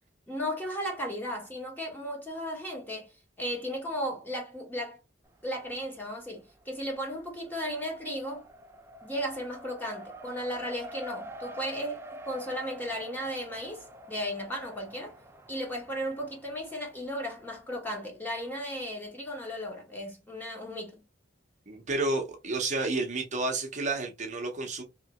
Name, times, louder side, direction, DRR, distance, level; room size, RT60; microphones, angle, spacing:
voice 1, 0.3-3.1 3.4-5.0 5.4-8.5 9.0-15.2 15.5-21.0, equal, 10° left, 1.2 m, -35 dB
Race car auto racing, 5.2-6.0 6.3-17.7, right 1 dB, 15° right, 0.4 m, -47 dB
voice 2, 21.7-24.8, right 2 dB, 40° right, 0.7 m, -30 dB
3.2 x 2.9 x 2.9 m
head